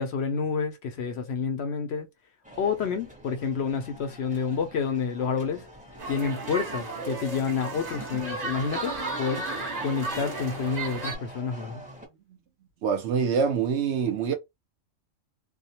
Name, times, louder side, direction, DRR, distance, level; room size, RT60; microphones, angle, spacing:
voice 1, 0.0-2.1 2.6-5.7 6.1-8.9 9.2-9.4 9.8-11.8, left 6 dB, 65° left, 0.7 m, -29 dB
sound 1, 2.4-12.1, equal, 10° right, 0.5 m, -45 dB
sound 2, 6.0-11.1, right 3 dB, 35° right, 0.9 m, -34 dB
voice 2, 12.8-14.3, right 6 dB, 65° right, 0.8 m, -25 dB
2.3 x 2.1 x 2.7 m
omnidirectional pair, 1.4 m